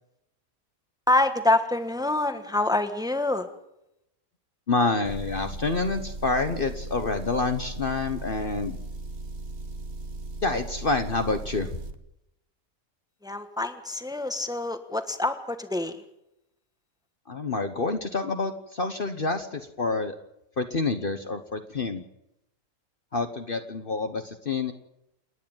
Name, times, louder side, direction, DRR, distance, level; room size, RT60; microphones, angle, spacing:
voice 1, 1.1-3.5 13.2-16.0, left 2 dB, 5° right, 8 dB, 1.3 m, -26 dB
voice 2, 4.7-8.8 10.4-11.7 17.3-20.2 20.6-22.0 23.1-24.7, left 3 dB, 40° left, 8 dB, 1.2 m, -28 dB
Motor vehicle (road) / Engine, 5.0-12.0, right 2 dB, 45° right, 1.3 m, -37 dB
28.5 x 10.5 x 8.9 m, 0.85 s
omnidirectional pair, 1.5 m